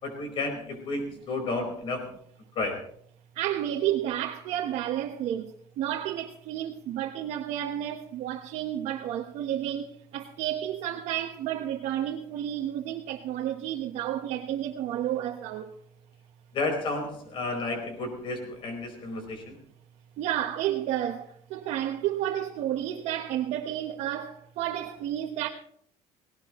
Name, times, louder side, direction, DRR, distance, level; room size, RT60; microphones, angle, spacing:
voice 1, 0.0-2.0 2.5-2.8 16.5-19.5, left 3 dB, 45° left, 4.8 m, -32 dB
voice 2, 3.3-15.7 19.2-19.3 20.2-25.5, right 11 dB, 70° right, 1.3 m, -31 dB
18.5 x 18.0 x 3.2 m
cardioid pair, 165°, 12 cm